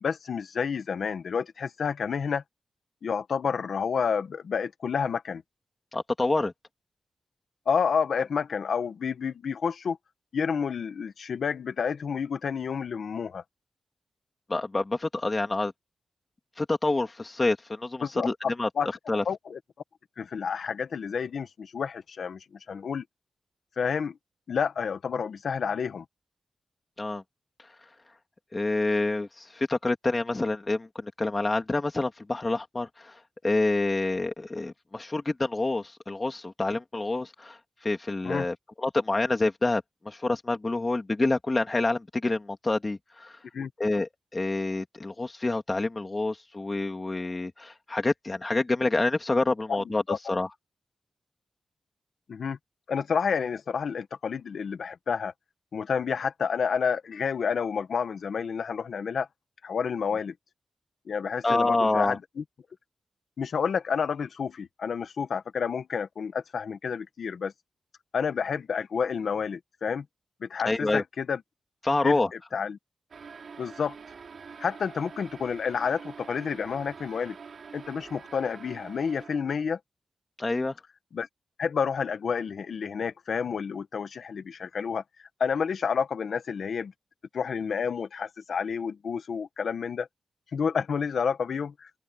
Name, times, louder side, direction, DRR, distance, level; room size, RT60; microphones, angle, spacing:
voice 1, 0.0-2.4 3.0-5.4 7.6-10.0 10.3-13.4 18.0-18.3 18.8-18.9 19.2-19.6 20.2-23.0 23.8-24.2 24.5-26.0 38.2-38.5 43.5-43.7 49.7-50.2 52.3-52.6 52.9-55.3 55.7-59.3 59.6-60.3 61.1-62.4 63.4-67.5 68.1-70.0 70.4-71.4 72.0-72.2 72.5-72.8 73.6-73.9 74.6-77.4 77.7-79.8 81.1-81.3 81.6-85.0 85.4-86.9 87.3-90.1 90.5-91.9, left 6 dB, 70° left, 1.4 m, -29 dB
voice 2, 5.9-6.5 14.5-15.7 16.6-18.7 19.1-19.2 27.0-27.2 28.5-33.1 33.4-37.6 37.8-43.3 43.8-50.5 61.4-62.2 70.6-71.0 71.8-72.3 80.4-80.8, left 2 dB, 25° left, 3.0 m, -27 dB
sound 1, 73.1-79.7, right 5 dB, 60° right, 5.6 m, -46 dB
open air
wide cardioid pair, 140°, 0 cm